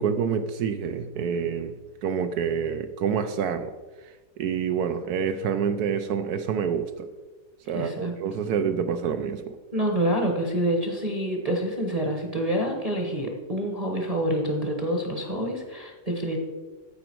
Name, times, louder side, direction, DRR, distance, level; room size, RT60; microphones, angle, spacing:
voice 1, 0.0-3.7 4.4-7.1 7.7-9.6, right 7 dB, 70° right, 9 dB, 1.0 m, -27 dB
voice 2, 7.7-8.1 9.7-16.4, right 1 dB, 25° right, 1 dB, 1.0 m, -27 dB
13.5 x 5.0 x 4.6 m, 1.3 s
omnidirectional pair, 1.9 m